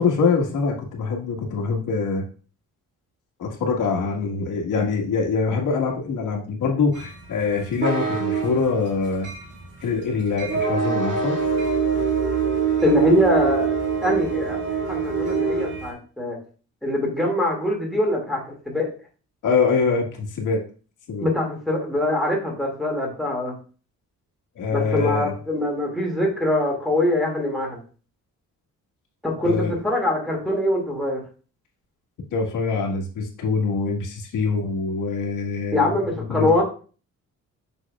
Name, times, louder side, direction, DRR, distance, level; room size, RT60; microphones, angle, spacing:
voice 1, 0.0-2.2 3.4-9.3 9.8-11.4 19.4-20.6 21.1-21.3 24.5-25.3 29.4-29.8 32.3-36.6, left 4 dB, 75° left, 0 dB, 1.7 m, -24 dB
sound 1, 7.0-15.9, right 6 dB, 35° right, 2.3 m, -25 dB
voice 2, 12.8-13.7 14.0-14.6 14.9-16.4 16.8-18.9 21.2-23.5 24.7-27.8 29.2-31.2 35.7-36.6, left 1 dB, ahead, -3 dB, 2.2 m, -23 dB
7.4 x 5.9 x 2.4 m, 0.37 s
cardioid pair, 130°, 31 cm